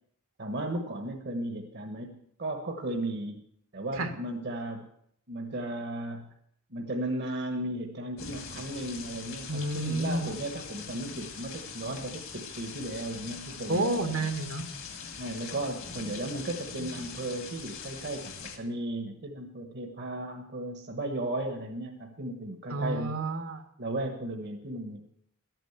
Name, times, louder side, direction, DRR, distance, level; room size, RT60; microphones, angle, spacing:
voice 1, 0.4-2.1 2.4-3.4 3.7-4.9 5.3-6.3 6.7-13.9 15.2-23.2 23.8-25.1, right 1 dB, 55° right, 3 dB, 1.4 m, -35 dB
sound 1, 8.2-18.6, left 5 dB, 65° left, 2.2 m, -42 dB
voice 2, 9.5-10.3 13.7-14.6 22.7-23.6, right 2 dB, 80° right, 6 dB, 2.0 m, -30 dB
12.5 x 9.1 x 8.1 m, 0.70 s
head